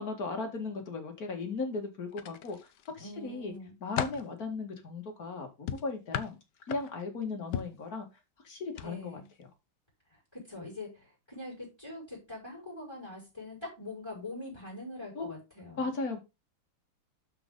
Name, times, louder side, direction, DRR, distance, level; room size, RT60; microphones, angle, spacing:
voice 1, 0.0-2.6 2.9-3.5 3.8-6.4 6.7-8.1 8.4-9.2 15.1-15.3 15.8-16.2, left 3 dB, 45° left, 2.4 m, -36 dB
sound 1, 2.1-2.9 3.4-4.3 5.7-7.1 7.5-7.8 8.7-8.9 9.2-9.4, left 9 dB, 65° left, 1.3 m, -36 dB
voice 2, 3.0-3.8 8.8-9.3 10.1-15.9, left 2 dB, 10° left, 6.0 m, -43 dB
12.0 x 5.1 x 3.9 m
omnidirectional pair, 2.2 m